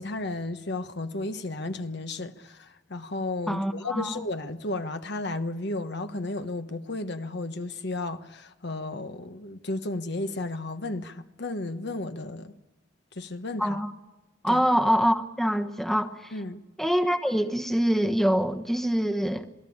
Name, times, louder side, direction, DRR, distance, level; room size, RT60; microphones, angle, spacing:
voice 1, 0.0-12.5 13.1-13.8 14.5-14.6 16.3-16.6, left 2 dB, 65° left, 1.3 m, -33 dB
voice 2, 3.5-4.2 13.6-13.9 14.4-16.3 16.8-19.5, equal, ahead, 1.1 m, -25 dB
27.5 x 18.5 x 8.7 m
head